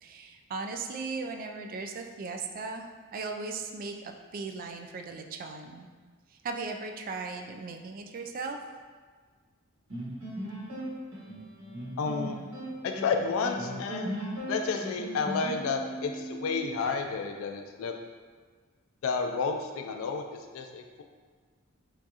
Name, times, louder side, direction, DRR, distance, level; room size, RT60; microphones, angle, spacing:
voice 1, 0.0-5.9 6.4-8.6, right 4 dB, 45° right, 5 dB, 0.3 m, -37 dB
sound 1, 9.9-16.9, right 1 dB, 90° right, 1.3 m, -38 dB
voice 2, 12.0-12.4 12.8-14.2 14.5-17.9 19.0-21.0, left 4 dB, 75° left, 4 dB, 0.3 m, -31 dB
4.5 x 2.5 x 2.8 m, 1.5 s
head